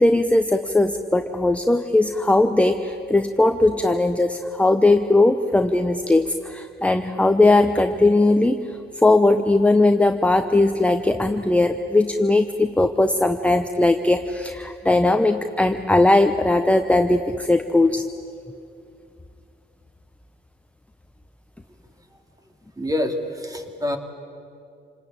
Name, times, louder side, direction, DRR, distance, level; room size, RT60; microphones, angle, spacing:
voice 1, 0.0-8.6 9.0-18.0, left 2 dB, 5° left, 6 dB, 0.9 m, -19 dB
voice 2, 22.8-24.0, left 1 dB, 20° right, 5 dB, 2.6 m, -26 dB
28.0 x 20.0 x 8.7 m, 2.5 s
cardioid pair, 100°, 19 cm